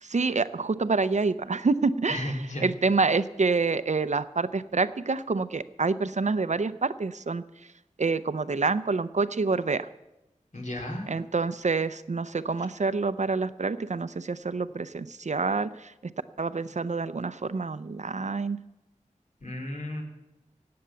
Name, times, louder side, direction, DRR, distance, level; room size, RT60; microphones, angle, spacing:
voice 1, 0.0-2.4 2.6-7.4 8.0-9.9 11.1-15.9 16.4-18.6, right 4 dB, 60° right, 14 dB, 0.6 m, -27 dB
voice 2, 2.1-2.6 10.5-11.1 19.4-20.0, left 1 dB, 65° left, 0 dB, 3.4 m, -33 dB
16.5 x 8.7 x 7.0 m, 0.94 s
wide cardioid pair, 60°, 14 cm